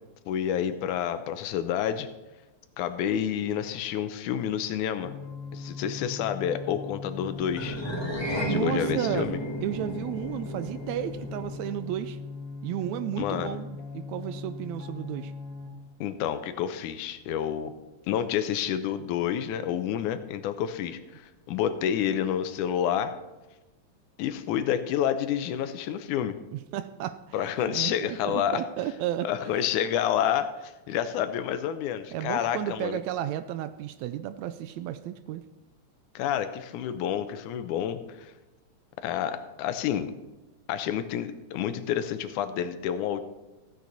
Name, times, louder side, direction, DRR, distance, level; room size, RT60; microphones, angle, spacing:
voice 1, 0.3-2.1 2.8-5.1 5.5-7.8 8.5-9.4 13.2-13.6 16.0-17.7 18.1-23.1 24.2-26.4 27.3-28.6 29.2-33.0 36.2-38.3 39.0-40.1 40.7-43.2, left 9 dB, 85° left, 10 dB, 2.2 m, -29 dB
sound 1, 5.0-15.7, left 4 dB, 55° left, 3.0 m, -40 dB
sound 2, 7.5-12.1, equal, 20° left, 0.8 m, -33 dB
voice 2, 8.3-9.3 9.6-12.2 12.6-15.3 26.5-29.6 32.1-35.5, right 11 dB, 80° right, 12 dB, 1.7 m, -33 dB
15.0 x 9.4 x 4.0 m, 1.1 s
omnidirectional pair, 3.5 m